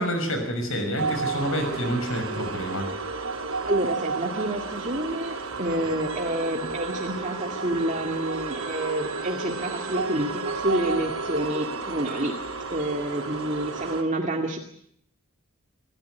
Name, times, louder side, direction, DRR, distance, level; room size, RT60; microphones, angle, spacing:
voice 1, 0.0-2.9, equal, 70° left, 6 dB, 6.2 m, -28 dB
sound 1, 1.0-14.0, right 4 dB, 85° right, 4.1 m, -32 dB
voice 2, 3.6-12.4 12.7-14.6, right 1 dB, 35° right, 2 dB, 2.2 m, -28 dB
27.0 x 14.0 x 9.4 m, 0.70 s
head